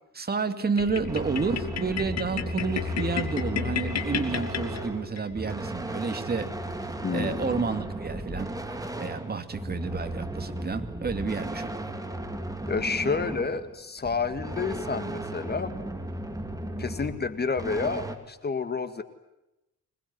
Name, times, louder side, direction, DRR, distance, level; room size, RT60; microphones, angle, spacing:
voice 1, 0.1-6.5 6.9-11.7, right 4 dB, 30° right, 8 dB, 2.4 m, -30 dB
sound 1, 0.8-5.2, left 7 dB, 55° left, 2.9 m, -32 dB
sound 2, 0.9-18.2, right 1 dB, 10° right, 2.9 m, -35 dB
voice 2, 7.0-7.6 12.7-15.8 16.8-19.0, left 5 dB, 30° left, 10 dB, 2.0 m, -30 dB
26.0 x 20.0 x 9.5 m, 0.91 s
cardioid pair, 110°, 31 cm